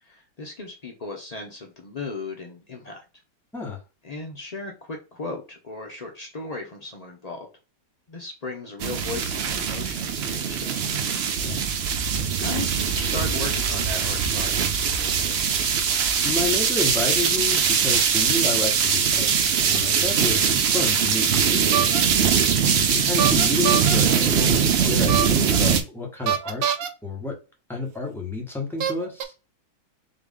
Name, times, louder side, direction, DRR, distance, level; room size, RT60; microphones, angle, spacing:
voice 1, 0.0-3.0 4.0-7.5 8.1-10.9 11.8-12.1 12.4-15.4, left 3 dB, 80° left, 1 dB, 0.3 m, -36 dB
sound 1, 8.8-25.8, right 7 dB, 90° right, 0.5 m, -22 dB
voice 2, 16.2-19.3 19.7-21.8 22.9-26.6 27.0-27.4 27.7-29.3, left 3 dB, ahead, -1 dB, 1.0 m, -30 dB
sound 2, 21.7-22.0 23.2-24.0 25.1-25.6 26.3-26.9 28.0-28.1 28.8-29.2, right 9 dB, 65° right, 0.9 m, -24 dB
3.9 x 2.9 x 3.6 m, 0.30 s
omnidirectional pair, 1.9 m